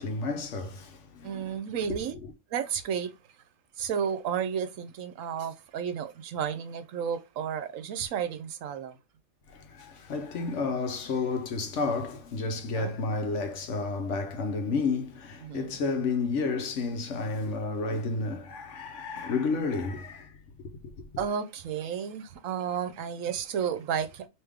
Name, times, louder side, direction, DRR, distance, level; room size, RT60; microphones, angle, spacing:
voice 1, 0.0-1.6 9.5-20.4 20.8-21.2, left 4 dB, 65° left, 1.0 m, -31 dB
voice 2, 1.2-2.2 2.5-3.1 3.8-9.0 12.7-12.9 15.4-15.8 21.2-24.3, right 8 dB, 75° right, 0.9 m, -32 dB
3.3 x 2.8 x 3.5 m
omnidirectional pair, 1.4 m